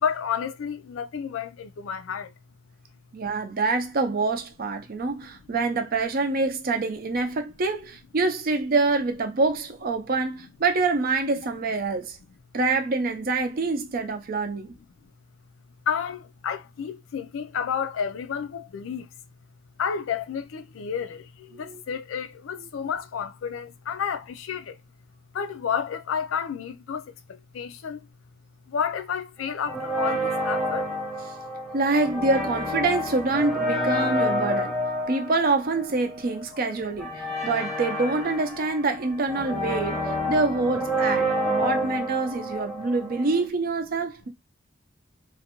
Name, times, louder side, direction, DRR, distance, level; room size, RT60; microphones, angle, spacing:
voice 1, 0.0-2.3 15.9-19.1 19.8-24.8 25.3-28.1 28.7-30.9 36.5-36.6, left 7 dB, 85° left, 0.4 m, -31 dB
voice 2, 3.1-12.2 12.5-14.8 21.5-21.8 22.6-22.7 31.7-34.7 35.1-44.3, right 3 dB, 50° right, 0.5 m, -26 dB
sound 1, 29.7-43.5, equal, ahead, 0.7 m, -29 dB
2.5 x 2.2 x 2.8 m
head